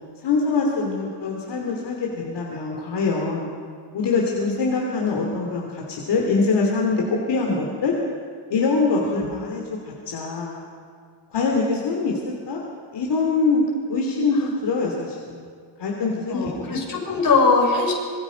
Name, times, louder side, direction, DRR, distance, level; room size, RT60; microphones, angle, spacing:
voice 1, 0.2-3.5 3.9-7.9 8.5-9.8 10.1-10.7 11.3-12.6 12.9-13.6 13.9-15.4 15.8-16.7, left 4 dB, 70° left, -1 dB, 3.2 m, -24 dB
voice 2, 16.3-17.9, left 4 dB, 50° left, -1 dB, 5.5 m, -21 dB
26.0 x 23.0 x 5.3 m, 2.1 s
wide cardioid pair, 165°, 44 cm